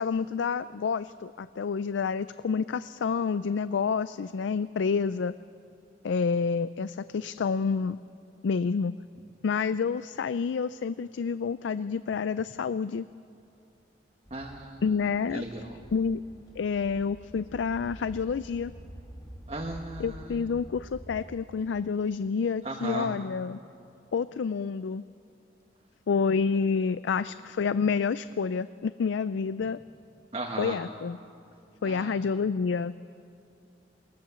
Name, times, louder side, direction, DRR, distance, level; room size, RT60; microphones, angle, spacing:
voice 1, 0.0-5.3 6.0-8.0 8.4-8.9 9.4-13.1 14.8-15.4 15.9-16.2 16.6-18.7 20.0-23.6 24.1-25.0 26.1-29.8 30.6-31.2 31.8-32.9, left 5 dB, 85° left, 15 dB, 0.4 m, -28 dB
sound 1, 14.2-21.3, equal, 20° left, 3.5 m, -47 dB
voice 2, 14.3-14.8 15.3-15.8 19.5-20.4 22.6-23.1 30.3-30.8 31.8-32.1, right 2 dB, 35° right, 1 dB, 1.3 m, -36 dB
21.5 x 19.5 x 6.9 m, 2.7 s
head